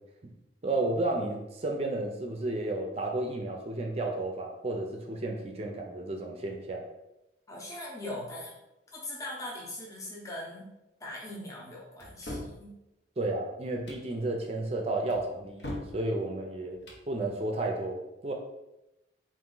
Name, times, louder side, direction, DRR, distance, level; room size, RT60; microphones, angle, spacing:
voice 1, 0.6-6.8 13.2-16.8 17.1-18.3, right 2 dB, 35° right, 2 dB, 0.4 m, -32 dB
voice 2, 7.5-8.6 8.9-10.7 11.0-12.7, left 1 dB, 15° left, -4 dB, 0.8 m, -40 dB
sound 1, 12.0-12.6 13.7-14.1 15.1-16.0 16.7-17.1, left 1 dB, 65° left, 0.8 m, -40 dB
4.1 x 2.5 x 3.8 m, 0.93 s
head